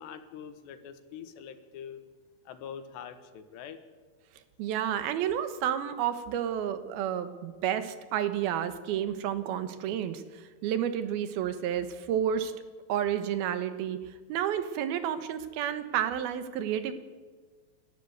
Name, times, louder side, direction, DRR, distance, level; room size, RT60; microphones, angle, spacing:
voice 1, 0.0-2.0 2.5-3.8, left 8 dB, 85° left, 9 dB, 3.5 m, -44 dB
voice 2, 4.6-12.6 12.9-16.9, right 9 dB, 70° right, 10 dB, 2.9 m, -31 dB
28.0 x 12.5 x 8.1 m, 1.4 s
omnidirectional pair, 4.7 m